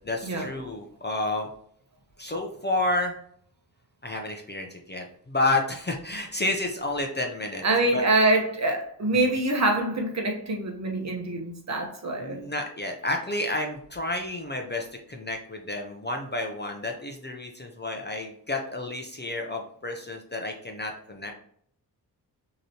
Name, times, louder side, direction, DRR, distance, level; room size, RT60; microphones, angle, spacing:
voice 1, 0.0-1.5 2.2-3.1 4.0-7.6 7.9-8.0 12.2-21.3, left 2 dB, 25° left, 2 dB, 0.5 m, -30 dB
voice 2, 7.6-12.4, right 2 dB, 40° right, 1 dB, 0.9 m, -25 dB
6.4 x 2.9 x 2.8 m, 0.64 s
wide cardioid pair, 170°, 42 cm